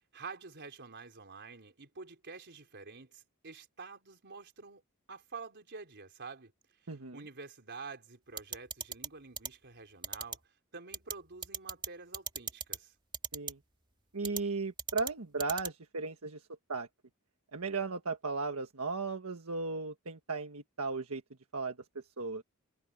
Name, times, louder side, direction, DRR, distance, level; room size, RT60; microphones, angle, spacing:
voice 1, 0.1-4.8 5.1-6.5 6.8-10.4 10.7-12.9, right 4 dB, 50° right, 4.3 m, -48 dB
sound 1, 8.4-9.1 9.4-9.5 10.0-10.4 10.9-11.1 11.4-11.9 12.1-12.8 13.1-13.5 14.2-14.4 14.8-15.1 15.4-15.7, right 6 dB, 20° right, 2.7 m, -36 dB
voice 2, 14.1-16.4 16.7-16.9 17.5-21.2 21.5-21.7 22.2-22.4, right 4 dB, 75° right, 1.5 m, -36 dB
head